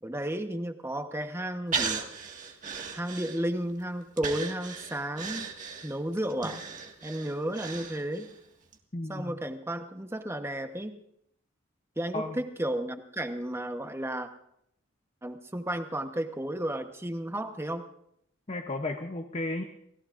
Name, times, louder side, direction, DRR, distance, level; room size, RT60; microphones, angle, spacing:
voice 1, 0.0-2.1 2.9-5.5 5.8-6.6 7.0-8.3 9.1-11.0 12.0-14.3 15.2-17.8, right 1 dB, 15° right, 6 dB, 1.1 m, -33 dB
Breathing, 1.7-3.7 4.2-8.4 8.7-8.8, right 5 dB, 40° right, 1.9 m, -36 dB
voice 2, 8.9-9.3 12.1-12.4 18.5-19.6, left 2 dB, 30° left, 5 dB, 0.8 m, -33 dB
29.5 x 18.0 x 2.6 m, 0.74 s
head